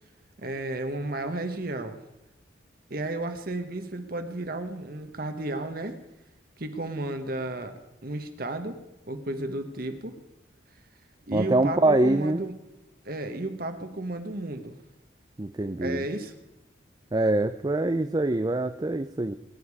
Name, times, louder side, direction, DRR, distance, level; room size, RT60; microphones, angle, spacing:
voice 1, 0.4-2.0 2.9-6.0 6.6-8.8 9.1-10.2 11.3-12.5 13.0-14.8 15.8-16.3, right 2 dB, 50° right, 7 dB, 1.2 m, -33 dB
voice 2, 11.3-12.4 15.4-16.1 17.1-19.4, right 2 dB, 20° right, 9 dB, 0.4 m, -24 dB
21.5 x 10.5 x 4.8 m, 1.0 s
head